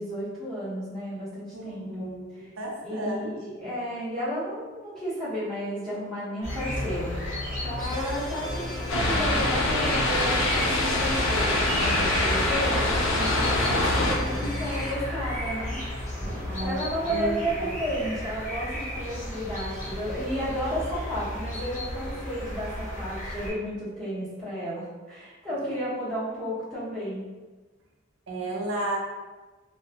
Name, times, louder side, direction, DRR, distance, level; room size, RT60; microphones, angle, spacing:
voice 1, 0.0-2.1 2.4-2.5 2.8-7.1 7.6-12.8 13.1-15.8 16.6-27.3, equal, 5° left, -13 dB, 1.2 m, -32 dB
voice 2, 1.5-3.7 16.5-17.7 28.3-29.0, right 1 dB, 85° right, -2 dB, 0.5 m, -33 dB
sound 1, 6.4-23.5, left 1 dB, 40° left, 0.8 m, -34 dB
sound 2, 7.8-14.9, equal, 20° left, 0.4 m, -39 dB
sound 3, 8.9-14.2, left 2 dB, 80° left, 0.4 m, -24 dB
2.5 x 2.0 x 2.8 m, 1.3 s
head